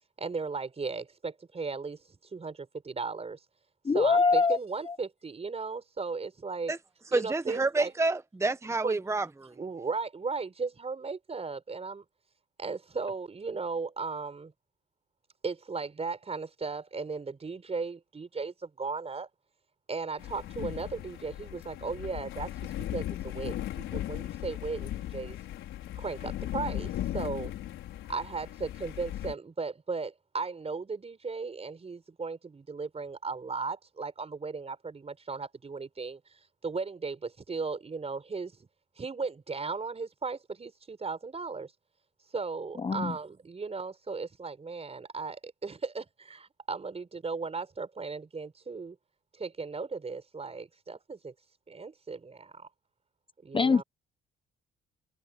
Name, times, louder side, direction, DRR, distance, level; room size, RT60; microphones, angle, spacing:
voice 1, 0.2-3.4 3.9-6.7 7.1-7.9 8.8-9.0 9.6-12.0 12.6-14.5 15.4-19.3 19.9-25.4 25.9-27.5 28.1-38.7 39.0-41.7 42.3-49.0 49.4-51.3 51.7-52.7 53.4-53.8, right 4 dB, 30° right, 4.9 m, -36 dB
voice 2, 3.8-4.6 4.9-5.0 42.8-43.2 53.5-53.8, left 4 dB, 25° left, 0.8 m, -24 dB
voice 3, 7.1-9.5, right 3 dB, 15° right, 1.0 m, -29 dB
sound 1, 20.2-29.3, left 13 dB, 85° left, 5.3 m, -37 dB
cardioid pair, 90°, 20 cm